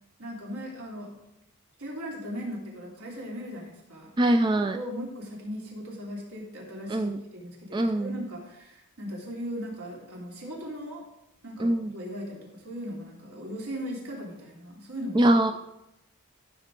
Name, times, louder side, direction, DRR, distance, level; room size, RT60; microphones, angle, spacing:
voice 1, 0.2-1.1 1.8-4.4 4.7-11.1 11.4-15.5, equal, 75° right, -3 dB, 3.1 m, -38 dB
voice 2, 4.2-4.8 6.9-7.2 7.7-8.2 11.6-11.9 15.2-15.5, right 1 dB, 20° right, 7 dB, 0.3 m, -23 dB
14.5 x 6.6 x 3.7 m, 0.87 s
head